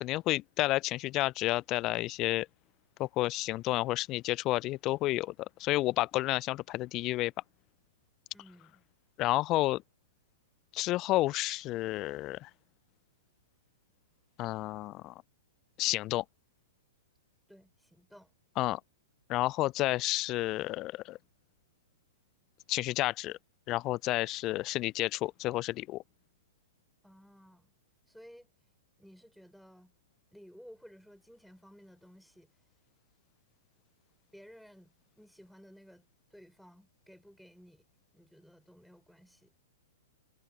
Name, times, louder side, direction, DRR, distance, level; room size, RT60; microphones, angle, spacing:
voice 1, 0.0-2.5 3.0-7.3 9.2-9.8 10.7-12.5 14.4-15.1 15.8-16.2 18.6-18.8 19.3-21.2 22.7-23.4 23.7-26.0, left 17 dB, 35° left, 0.3 m, -30 dB
voice 2, 8.3-8.8 17.5-18.3 27.0-27.7 28.1-28.5 29.0-29.9 30.3-32.5 34.3-37.8 38.1-39.5, equal, ahead, 4.9 m, -56 dB
figure-of-eight pair, 110°, 0 cm